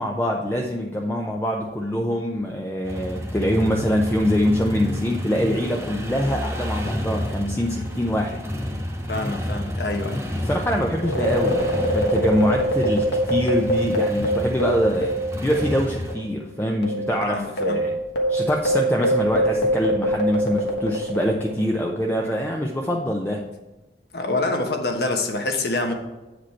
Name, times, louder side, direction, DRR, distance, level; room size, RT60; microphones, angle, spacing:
voice 1, 0.0-8.4 10.4-15.1 15.4-17.9 18.3-23.4, equal, 10° left, 1 dB, 0.5 m, -24 dB
sound 1, 2.8-16.2, equal, 15° right, 1.1 m, -30 dB
voice 2, 9.1-10.2 17.3-17.8 24.1-25.9, left 2 dB, 60° left, 4 dB, 1.1 m, -26 dB
sound 2, 11.0-15.8 16.1-16.2 16.8-21.6, right 1 dB, 75° left, 1.3 m, -24 dB
8.4 x 5.1 x 4.4 m, 1.1 s
head